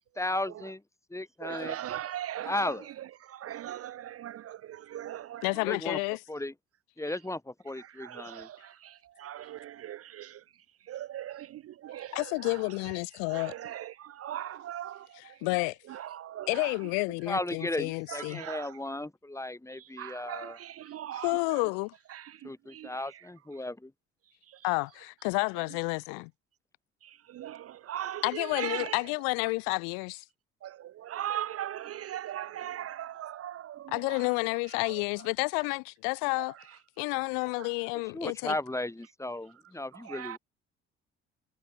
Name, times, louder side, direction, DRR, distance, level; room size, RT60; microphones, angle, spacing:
voice 1, 0.2-0.8 1.1-1.8 2.4-2.9 5.6-6.0 6.3-6.5 7.0-8.5 17.3-20.6 22.4-23.9 38.1-40.4, left 1 dB, 10° left, 2.1 m, -35 dB
voice 2, 1.4-2.7 3.2-5.5 7.8-10.4 10.9-12.6 13.3-15.4 15.9-16.7 18.1-18.7 20.0-21.6 22.1-22.9 24.5-24.6 27.0-29.0 30.6-34.3 36.4-36.5 37.6-37.7 40.0-40.4, right 12 dB, 45° right, 0.5 m, -39 dB
voice 3, 5.4-6.2 12.1-13.5 15.1-15.8 16.5-18.4 21.1-21.9 24.6-26.3 28.2-30.2 33.9-36.5 37.0-38.5, left 40 dB or more, 85° left, 0.6 m, -30 dB
supercardioid pair, 65°, 33 cm